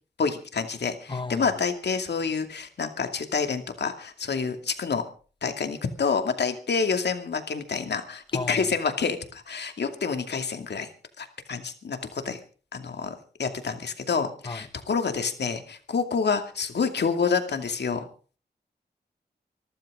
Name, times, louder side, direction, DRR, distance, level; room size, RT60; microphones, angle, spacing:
voice 1, 0.2-5.0 5.4-10.9 11.2-12.4 12.7-13.1 13.4-18.0, left 5 dB, 75° left, 2.5 m, -28 dB
voice 2, 1.1-1.5 8.3-8.7 14.5-14.6, left 3 dB, 30° left, 1.1 m, -33 dB
25.0 x 14.0 x 3.8 m
cardioid pair, 70°, 17 cm